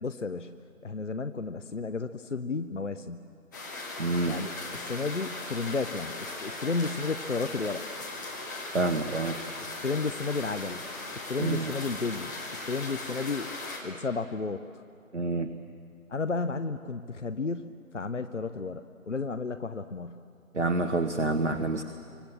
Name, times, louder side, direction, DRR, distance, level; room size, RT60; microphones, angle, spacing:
voice 1, 0.0-0.6 0.8-3.3 4.3-7.8 9.8-10.8 11.3-12.3 12.7-13.5 13.8-14.6 16.1-20.2, left 4 dB, 55° left, 11 dB, 0.8 m, -32 dB
sound 1, 3.5-13.8, left 2 dB, 15° left, 1.8 m, -38 dB
voice 2, 4.0-4.4 8.7-9.4 11.4-11.7 15.1-15.5 20.5-21.8, right 2 dB, 55° right, 7 dB, 1.2 m, -27 dB
29.0 x 25.0 x 7.4 m, 2.4 s
figure-of-eight pair, 160°, 43 cm